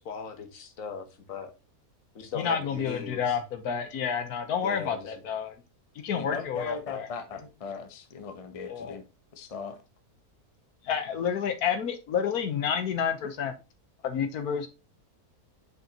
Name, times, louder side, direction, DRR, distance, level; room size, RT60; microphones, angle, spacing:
voice 1, 0.0-1.5 2.1-3.4 4.6-5.1, left 6 dB, 60° left, 1.4 m, -38 dB
voice 2, 2.3-5.5 5.9-7.1 8.7-9.0 10.8-13.5 14.0-14.7, left 7 dB, 80° left, 1.4 m, -29 dB
voice 3, 6.1-9.0 9.3-9.8, left 5 dB, 30° left, 0.8 m, -38 dB
6.2 x 5.3 x 2.8 m
omnidirectional pair, 1.6 m